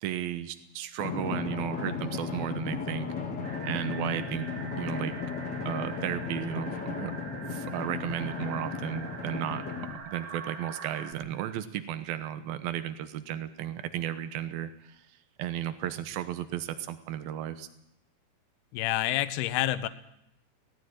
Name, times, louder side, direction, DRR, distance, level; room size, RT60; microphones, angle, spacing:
voice 1, 0.0-3.1 3.6-4.5 4.8-5.1 5.7-6.7 7.0-7.1 7.5-9.6 10.1-15.0 15.4-17.7, right 11 dB, 80° right, 10 dB, 2.1 m, -34 dB
Drum, 1.0-9.9, left 5 dB, 35° left, 1.8 m, -35 dB
sound 1, 3.4-11.1, right 5 dB, 60° right, 4.1 m, -44 dB
voice 2, 18.7-19.9, left 14 dB, 75° left, 12 dB, 2.5 m, -28 dB
18.5 x 14.5 x 9.9 m, 0.80 s
omnidirectional pair, 5.6 m